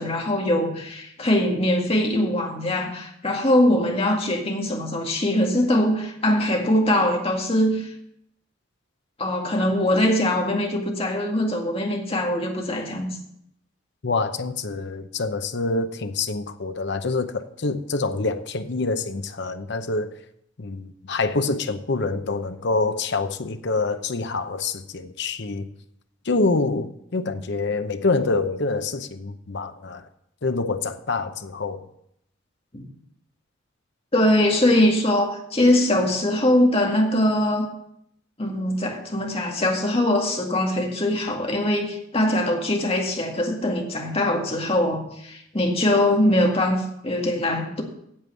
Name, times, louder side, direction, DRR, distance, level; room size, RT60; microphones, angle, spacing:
voice 1, 0.0-7.9 9.2-13.1 32.7-32.9 34.1-37.7 38.4-47.8, left 1 dB, 30° left, 1 dB, 2.0 m, -22 dB
voice 2, 14.0-20.1 20.6-25.7 26.3-30.0 30.4-31.9, left 3 dB, 60° left, 9 dB, 0.8 m, -26 dB
8.7 x 7.8 x 7.1 m, 0.75 s
head